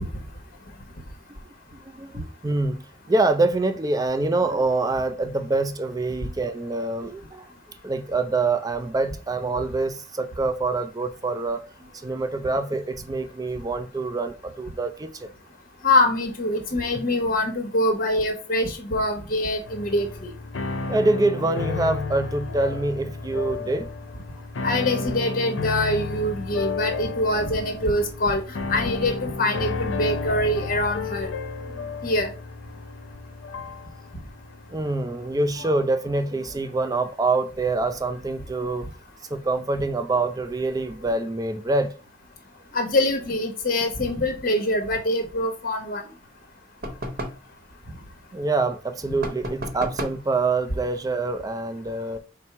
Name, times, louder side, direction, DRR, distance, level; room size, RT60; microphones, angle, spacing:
voice 1, 1.9-15.3 20.9-23.9 31.6-31.9 34.7-38.9 39.3-42.0 48.3-52.2, right 3 dB, 20° right, 0.4 m, -25 dB
voice 2, 15.8-20.3 24.6-28.4 28.7-31.3 32.0-32.3 42.7-46.0, left 1 dB, 50° left, 1.0 m, -24 dB
sound 1, 19.7-35.9, left 4 dB, 90° left, 0.6 m, -32 dB
sound 2, 46.8-47.5 49.2-50.3, right 1 dB, 50° right, 0.8 m, -32 dB
4.3 x 2.0 x 4.5 m
head